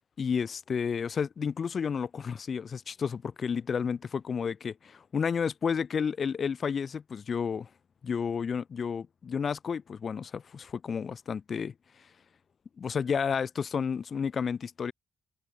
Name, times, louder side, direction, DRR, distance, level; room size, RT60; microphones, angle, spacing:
voice 1, 0.2-7.7 8.0-11.7 12.8-14.9, left 6 dB, 45° left, 3.9 m, -31 dB
cardioid pair, 90°, 0 cm